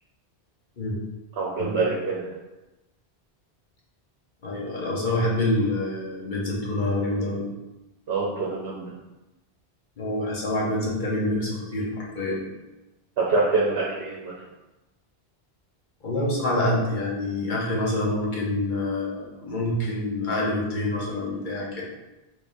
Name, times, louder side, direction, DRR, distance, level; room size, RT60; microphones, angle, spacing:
voice 1, 1.4-2.3 8.1-8.9 13.2-14.3, right 3 dB, 70° right, -4 dB, 0.9 m, -25 dB
voice 2, 4.4-7.5 10.0-12.5 16.0-21.8, left 1 dB, 50° left, -4 dB, 1.0 m, -26 dB
3.6 x 3.5 x 2.6 m, 1.0 s
omnidirectional pair, 1.1 m